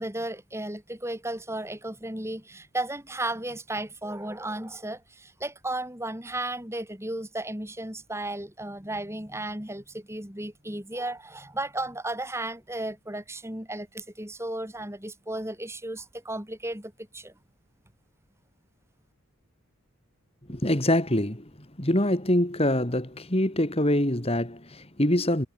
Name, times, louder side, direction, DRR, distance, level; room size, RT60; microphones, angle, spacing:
voice 1, 0.0-17.3, right 1 dB, 10° right, 4.9 m, -34 dB
voice 2, 20.5-21.5 21.8-25.5, left 1 dB, 25° left, 2.8 m, -24 dB
head